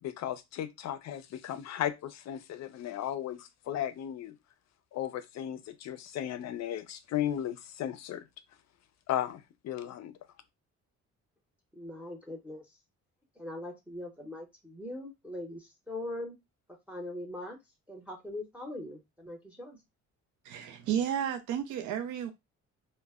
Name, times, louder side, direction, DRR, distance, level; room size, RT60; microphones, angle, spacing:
voice 1, 0.0-4.4 4.9-8.3 9.1-10.2, left 11 dB, 60° left, 0.5 m, -35 dB
voice 2, 11.7-12.7 13.4-16.4 16.9-17.6 17.9-19.8, left 1 dB, 5° right, 0.7 m, -41 dB
voice 3, 20.4-22.3, right 9 dB, 80° right, 0.5 m, -32 dB
2.1 x 2.0 x 3.5 m
cardioid pair, 90°, 30 cm